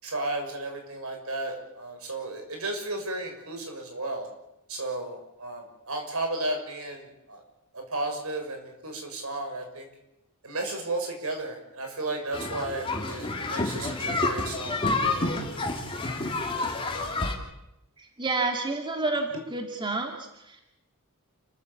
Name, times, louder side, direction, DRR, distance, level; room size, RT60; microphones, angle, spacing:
voice 1, 0.0-4.3 4.7-7.4 7.7-9.9 10.4-14.8, right 2 dB, 70° right, 4 dB, 6.5 m, -34 dB
sound 1, 12.3-17.3, left 2 dB, 25° left, 3.2 m, -29 dB
voice 2, 18.0-20.7, right 3 dB, 20° right, 3 dB, 2.2 m, -30 dB
29.5 x 14.5 x 8.5 m, 0.89 s
head